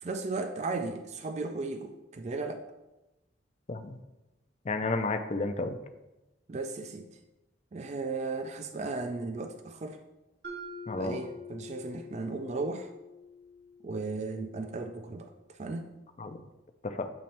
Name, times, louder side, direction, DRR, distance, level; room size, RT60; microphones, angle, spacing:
voice 1, 0.0-2.7 6.5-7.1 7.7-10.0 11.0-12.9 13.8-15.9, right 3 dB, 35° right, 7 dB, 0.3 m, -35 dB
voice 2, 4.7-5.8 10.9-11.2 16.2-16.4 16.8-17.1, left 3 dB, 35° left, 8 dB, 0.4 m, -31 dB
Mallet percussion, 10.4-14.5, left 2 dB, 55° right, 1.2 m, -46 dB
8.5 x 3.1 x 4.3 m, 0.99 s
head